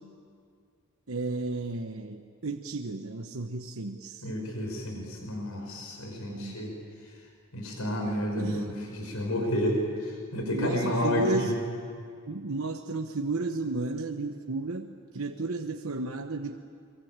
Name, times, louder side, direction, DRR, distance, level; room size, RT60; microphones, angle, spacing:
voice 1, 1.1-4.3 6.3-6.6 8.1-8.7 10.5-11.6 12.3-16.6, right 3 dB, 70° right, 4 dB, 1.1 m, -33 dB
voice 2, 4.2-6.7 7.5-11.5, equal, 80° left, 2 dB, 5.6 m, -30 dB
23.5 x 23.0 x 8.9 m, 2.2 s
head